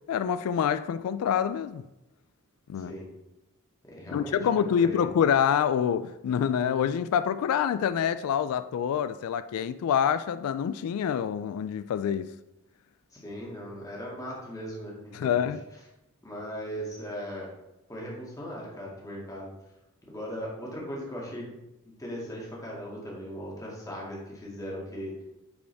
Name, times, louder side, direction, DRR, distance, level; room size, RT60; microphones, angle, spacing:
voice 1, 0.1-1.9 2.7-2.9 4.1-12.3 15.1-15.6, left 8 dB, 85° left, 0.3 m, -26 dB
voice 2, 2.8-3.1 3.9-5.1 13.1-15.5 16.2-17.5 17.9-19.5 20.0-21.5 21.9-25.2, equal, 15° left, 2.1 m, -38 dB
9.4 x 5.1 x 3.4 m
head